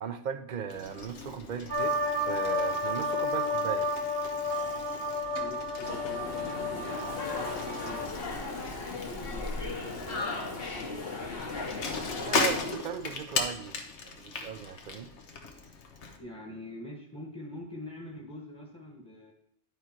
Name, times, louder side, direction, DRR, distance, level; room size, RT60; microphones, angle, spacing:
voice 1, 0.0-2.0 2.3-3.9 12.2-15.1, right 7 dB, 55° right, 0.6 m, -37 dB
Bicycle, 0.7-16.2, left 4 dB, 85° left, 1.3 m, -38 dB
sound 1, 1.7-8.1, left 1 dB, 20° right, 1.0 m, -31 dB
voice 2, 5.4-11.7 16.1-19.3, left 1 dB, 15° left, 1.1 m, -46 dB
sound 2, 5.8-12.7, left 3 dB, 60° left, 1.5 m, -36 dB
10.5 x 5.0 x 4.4 m
omnidirectional pair, 1.1 m